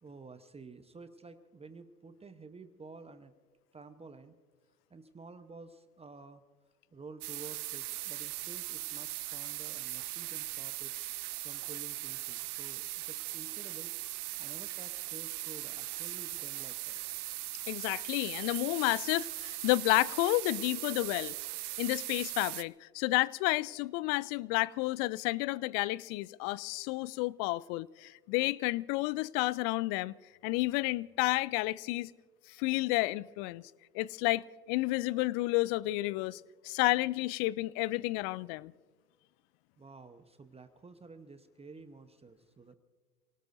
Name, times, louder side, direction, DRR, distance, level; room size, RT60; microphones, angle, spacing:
voice 1, 0.0-3.3 3.7-4.4 4.9-6.4 6.9-10.9 11.4-13.9 14.4-17.0 39.8-42.7, right 4 dB, 15° right, 0.9 m, -51 dB
sound 1, 7.2-22.6, right 16 dB, 70° right, 0.7 m, -39 dB
voice 2, 17.7-21.4 21.8-30.1 30.4-32.1 32.6-33.6 33.9-38.7, left 20 dB, 35° left, 0.4 m, -31 dB
28.0 x 18.5 x 2.6 m
hypercardioid pair, 85°, 46 cm